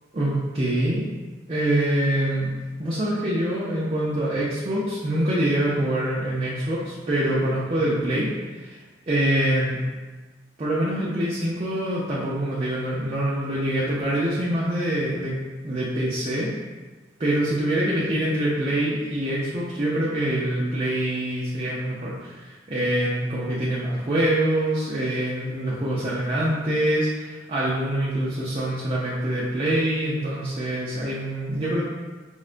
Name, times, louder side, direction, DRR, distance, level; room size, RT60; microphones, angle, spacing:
voice 1, 0.1-1.1 1.5-2.5 2.8-8.3 8.5-8.8 9.1-9.8 10.6-15.3 15.6-16.5 17.2-31.8, right 1 dB, 30° right, -7 dB, 0.4 m, -25 dB
4.7 x 2.1 x 2.5 m, 1.3 s
head